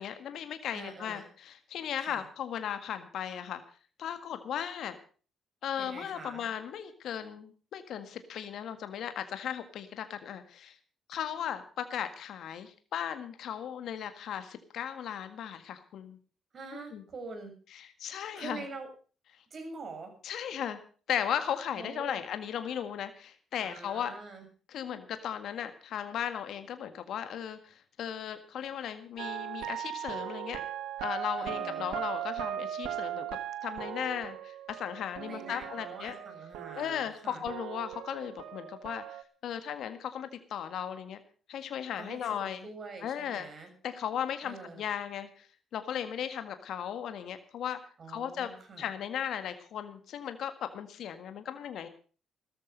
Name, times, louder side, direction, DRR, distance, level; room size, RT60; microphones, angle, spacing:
voice 1, 0.0-3.6 4.0-5.0 5.6-10.8 11.1-16.2 16.9-17.0 17.7-18.6 20.2-20.8 21.1-24.1 24.7-30.6 31.0-36.1 36.8-41.2 41.5-42.7 43.0-43.5 43.8-45.5 45.7-47.8 48.1-48.5 48.8-51.9, left 9 dB, 70° left, 9 dB, 1.7 m, -36 dB
voice 2, 0.7-1.3 2.0-2.2 5.8-6.4 16.5-17.5 18.3-18.9 19.5-20.1 21.8-22.2 23.6-24.4 31.4-31.9 35.2-37.4 42.0-43.7 44.4-44.8 48.0-48.9, right 3 dB, 55° right, 5 dB, 6.7 m, -45 dB
sound 1, 29.2-37.2 37.5-39.2, right 11 dB, 75° right, 1.3 m, -38 dB
16.5 x 13.5 x 5.2 m, 0.40 s
hypercardioid pair, 50°, 0 cm